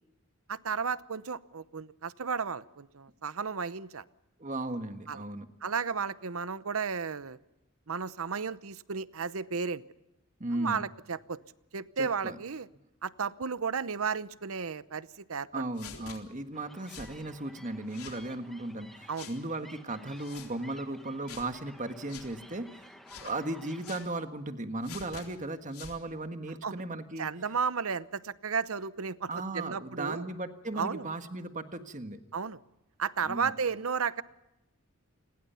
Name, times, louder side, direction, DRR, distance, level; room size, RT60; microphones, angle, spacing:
voice 1, 0.5-4.0 5.1-5.2 5.6-7.4 7.9-9.8 10.5-11.4 11.7-12.7 13.0-15.6 19.1-19.3 26.6-26.7 27.2-30.3 30.7-31.1 32.3-32.6 33.0-34.2, right 5 dB, 70° right, 16 dB, 0.8 m, -33 dB
voice 2, 4.4-5.5 10.4-10.8 12.0-12.4 15.5-22.9 23.2-27.3 29.3-32.2 33.2-33.5, right 2 dB, 35° right, 8 dB, 1.6 m, -36 dB
sound 1, 15.8-16.2 16.9-17.1 17.9-18.2 19.1-19.4 20.2-20.5 21.3-21.5 22.1-22.3 23.1-23.4 23.8-24.1 24.8-25.3 25.7-26.0, left 6 dB, 80° left, 3.8 m, -46 dB
sound 2, 16.5-24.1, equal, ahead, 1.5 m, -54 dB
28.5 x 21.0 x 5.7 m, 0.95 s
head